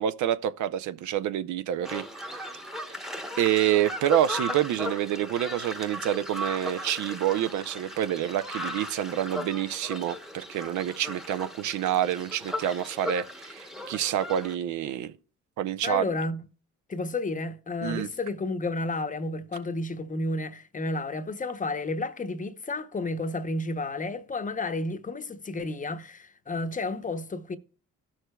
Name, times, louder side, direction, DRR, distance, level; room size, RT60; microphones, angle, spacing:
voice 1, 0.0-2.0 3.4-15.1 15.6-16.0 17.8-18.1, right 11 dB, 75° right, 0.5 m, -27 dB
sound 1, 1.8-14.5, left 1 dB, ahead, 0.9 m, -37 dB
voice 2, 15.8-16.5 16.9-27.6, left 2 dB, 25° left, 0.7 m, -31 dB
16.5 x 6.4 x 2.2 m
cardioid pair, 90°, 30 cm